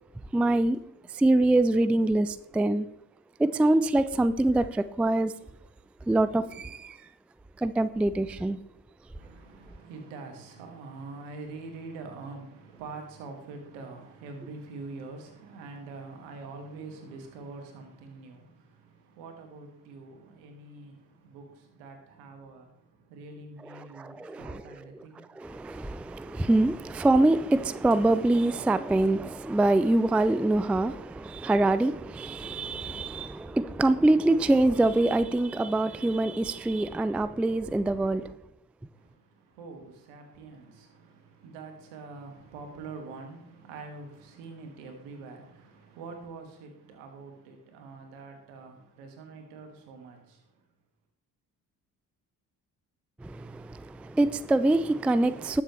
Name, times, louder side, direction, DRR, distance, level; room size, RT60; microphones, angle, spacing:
voice 1, 0.3-0.8 1.1-2.9 3.4-5.3 6.1-7.0 7.6-8.6 23.9-24.8 25.4-38.3 53.2-55.6, right 2 dB, 5° right, 0.4 m, -24 dB
voice 2, 9.1-25.3 38.9-50.6, right 3 dB, 70° right, 2.3 m, -45 dB
19.5 x 7.0 x 3.2 m
figure-of-eight pair, 45°, 48 cm